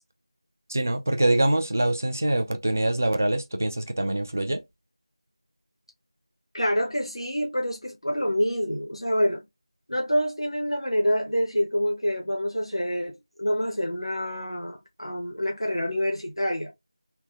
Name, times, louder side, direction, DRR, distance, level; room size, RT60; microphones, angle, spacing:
voice 1, 0.7-4.6, right 1 dB, 30° right, 0.4 m, -24 dB
voice 2, 6.5-9.5 9.9-16.7, equal, 80° left, 0.9 m, -27 dB
3.4 x 2.2 x 3.0 m
figure-of-eight pair, 170°, 3 cm